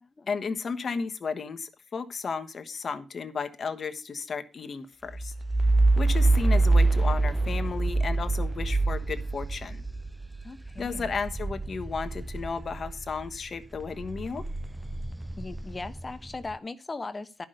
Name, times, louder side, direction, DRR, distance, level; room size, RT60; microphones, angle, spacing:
voice 1, 0.3-5.3 6.0-9.8 10.8-14.4, left 5 dB, 50° left, 8 dB, 1.4 m, -34 dB
sound 1, 5.1-13.4 13.7-16.3, right 2 dB, 10° right, 0.4 m, -26 dB
voice 2, 10.4-11.1 15.4-17.5, left 3 dB, 30° left, 11 dB, 1.0 m, -38 dB
11.0 x 6.0 x 6.4 m, 0.31 s
cardioid pair, 75°, 0 cm